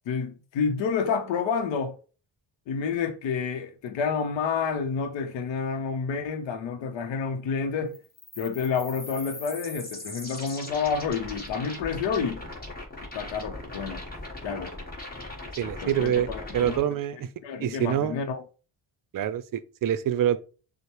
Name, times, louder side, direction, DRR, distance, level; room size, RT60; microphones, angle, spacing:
voice 1, 0.1-2.0 2.7-8.0 8.4-12.5 13.1-14.0 14.4-14.8 15.8-16.8 17.4-18.4, left 6 dB, 80° left, 0.7 m, -29 dB
sound 1, 7.9-16.8, left 1 dB, 20° left, 1.3 m, -39 dB
voice 2, 15.6-16.3 16.5-17.3 17.6-18.2 19.1-20.4, right 10 dB, 50° right, 0.5 m, -26 dB
6.3 x 2.1 x 3.0 m
cardioid pair, 105°, 44 cm